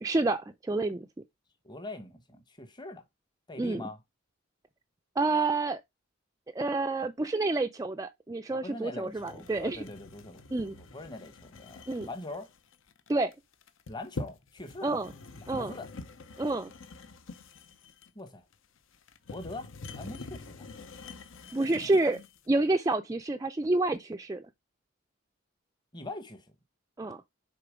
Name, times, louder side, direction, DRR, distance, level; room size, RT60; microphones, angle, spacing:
voice 1, 0.0-1.1 3.6-3.8 5.2-5.8 6.5-9.8 10.5-10.8 11.9-12.1 13.1-13.3 14.8-15.1 15.5-15.7 16.4-16.7 21.5-22.2 22.5-24.5 27.0-27.2, right 2 dB, 15° right, 0.3 m, -28 dB
voice 2, 1.6-3.0 3.5-4.0 8.5-12.5 13.9-14.9 15.4-15.9 18.1-18.4 19.3-19.7 19.9-20.7 21.4-22.0 25.9-26.5, left 2 dB, 20° left, 1.0 m, -43 dB
sound 1, 9.1-22.5, left 3 dB, 75° left, 0.8 m, -46 dB
6.8 x 3.9 x 4.9 m
head